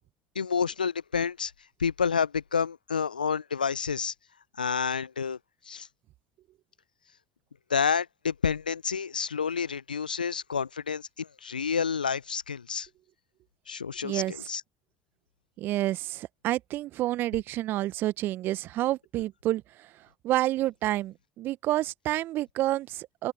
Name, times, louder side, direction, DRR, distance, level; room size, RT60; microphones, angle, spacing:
voice 1, 0.3-1.5 1.8-4.1 4.6-5.4 5.7-5.9 7.7-12.9 13.7-14.6, left 6 dB, 85° left, 0.9 m, -29 dB
voice 2, 14.0-14.5 15.6-23.3, right 15 dB, 50° right, 1.5 m, -29 dB
open air
figure-of-eight pair, 65°, 5 cm